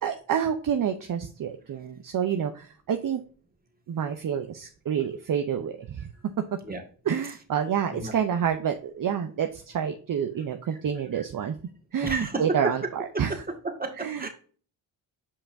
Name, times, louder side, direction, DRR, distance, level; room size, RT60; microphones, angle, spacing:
voice 1, 0.0-3.2 3.9-6.1 7.0-11.5 11.9-13.4 14.0-14.3, right 8 dB, 45° right, 6 dB, 0.8 m, -28 dB
voice 2, 12.0-12.7 13.1-13.2 13.6-14.3, right 2 dB, 20° right, 3 dB, 1.9 m, -30 dB
6.8 x 5.4 x 2.7 m, 0.41 s
supercardioid pair, 55°, 48 cm